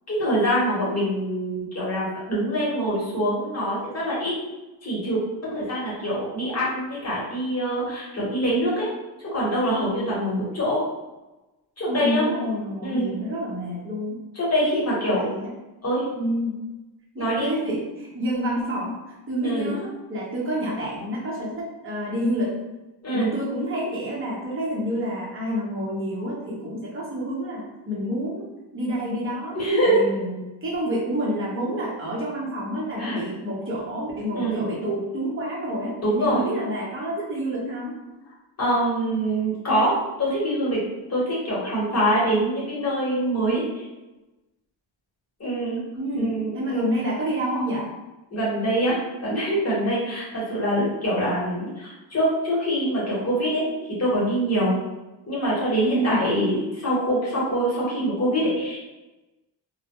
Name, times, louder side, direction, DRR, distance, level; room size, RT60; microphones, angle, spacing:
voice 1, 0.1-4.3 4.8-5.2 5.5-8.9 9.3-10.8 11.8-12.2 12.8-13.1 14.3-15.3 15.8-16.0 17.2-17.5 19.4-19.7 23.0-23.3 29.5-30.1 33.0-33.2 34.3-34.7 36.0-36.4 38.6-40.8 41.1-43.6 45.4-45.8 46.1-46.9 48.3-53.6 54.0-54.7 55.3-58.9, right 1 dB, 35° left, -6 dB, 1.1 m, -24 dB
voice 2, 11.9-14.2 14.7-14.8 15.1-15.5 16.1-16.6 17.1-18.9 19.3-22.6 23.1-29.6 29.8-37.9 46.0-47.9 55.8-56.3, equal, 30° right, -5 dB, 0.9 m, -28 dB
2.2 x 2.2 x 2.9 m, 1.0 s
cardioid pair, 95°, 45 cm